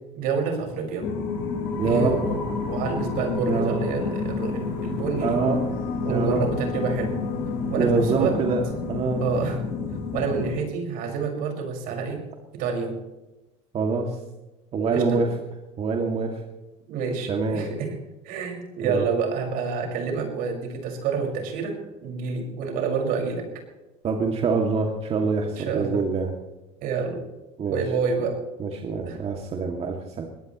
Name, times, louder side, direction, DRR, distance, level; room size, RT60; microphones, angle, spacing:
voice 1, 0.1-1.1 1.8-5.4 6.0-7.2 7.7-8.4 9.2-9.6 10.1-12.3 12.5-13.0 14.9-15.2 16.9-17.9 18.2-23.5 25.6-26.1 26.8-27.2 27.7-28.4 29.1-29.2, right 5 dB, 70° right, 2 dB, 5.6 m, -28 dB
sound 1, 1.0-10.5, left 4 dB, 80° left, 4.7 m, -29 dB
voice 2, 1.8-2.2 3.5-3.8 5.2-5.6 6.1-6.4 7.8-8.6 8.9-9.2 13.7-14.1 14.7-15.3 15.8-16.3 17.3-17.7 18.9-19.0 24.0-26.3 27.6-27.8 28.6-30.3, right 4 dB, 40° right, 1 dB, 2.4 m, -25 dB
22.5 x 18.5 x 3.1 m, 1.0 s
supercardioid pair, 110°, 16 cm